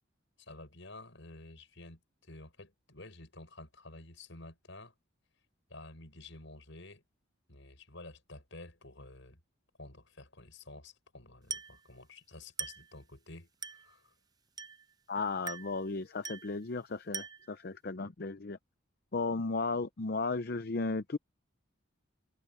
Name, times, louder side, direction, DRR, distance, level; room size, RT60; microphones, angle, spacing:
voice 1, 0.4-4.9 5.7-7.0 7.5-9.4 9.8-14.1, left 2 dB, 65° left, 5.6 m, -51 dB
Glass, 11.5-11.8 12.6-12.9 13.6-13.9 14.6-14.9 15.5-15.8 16.2-16.6 17.1-17.5, right 6 dB, 20° right, 0.7 m, -41 dB
voice 2, 15.1-18.6 19.1-21.2, left 3 dB, 50° left, 0.6 m, -35 dB
head